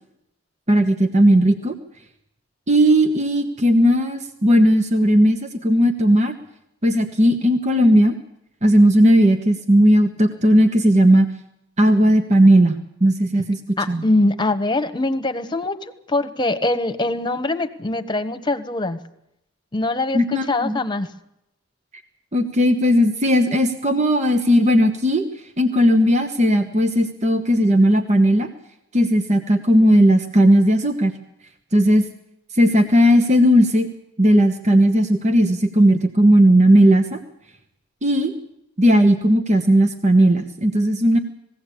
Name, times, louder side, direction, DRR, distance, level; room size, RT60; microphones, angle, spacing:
voice 1, 0.7-1.7 2.7-6.3 6.8-8.2 8.6-11.3 11.8-14.0 20.1-20.8 22.3-25.3 25.6-28.5 28.9-31.1 31.7-32.0 32.5-33.9 34.2-37.2 38.0-38.3 38.8-41.2, equal, 35° right, 6 dB, 1.2 m, -16 dB
voice 2, 13.8-15.8 16.1-19.0 19.7-21.1, left 2 dB, 25° left, 8 dB, 1.3 m, -22 dB
20.5 x 16.5 x 8.5 m, 0.81 s
head